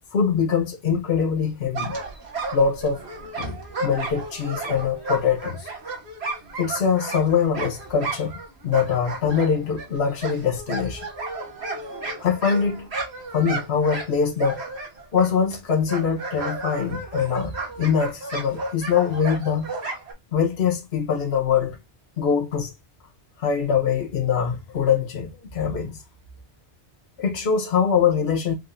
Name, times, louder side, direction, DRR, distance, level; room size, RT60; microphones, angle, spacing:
voice 1, 0.1-1.9 2.5-3.1 3.4-5.7 6.6-8.4 8.6-11.1 12.2-12.9 13.3-14.6 15.1-19.7 20.3-21.8 22.2-22.7 23.4-26.0 27.2-28.5, left 6 dB, 65° left, 1.3 m, -23 dB
sound 1, 1.7-8.5 8.7-15.6 15.9-20.1, right 3 dB, 65° right, 1.6 m, -33 dB
6.3 x 2.6 x 2.3 m
omnidirectional pair, 1.2 m